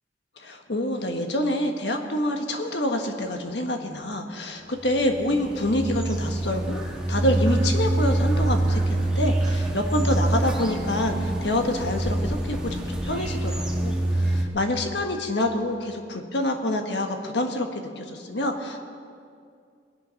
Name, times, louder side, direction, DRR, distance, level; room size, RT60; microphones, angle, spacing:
voice 1, 0.4-6.8 7.1-18.8, left 1 dB, 70° left, 4 dB, 1.5 m, -27 dB
sound 1, 4.7-14.4, right 1 dB, 5° right, 1.7 m, -25 dB
21.5 x 8.3 x 5.8 m, 2.3 s
head